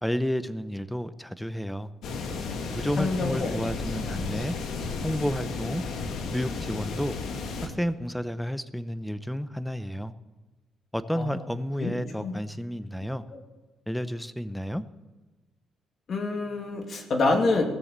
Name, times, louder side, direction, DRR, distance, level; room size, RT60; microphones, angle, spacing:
voice 1, 0.0-1.9 2.7-4.5 5.0-5.8 6.3-7.2 7.6-10.1 10.9-13.2 13.9-14.8, equal, 5° left, 13 dB, 0.7 m, -31 dB
sound 1, 2.0-7.7, left 4 dB, 75° left, 2.0 m, -33 dB
voice 2, 3.0-3.7 4.4-4.5 11.2-11.3 11.8-11.9 12.2-12.3 13.3-13.4 16.1-17.6, left 3 dB, 50° left, 3 dB, 2.6 m, -27 dB
16.5 x 7.0 x 7.4 m, 1.2 s
cardioid pair, 90°, 0 cm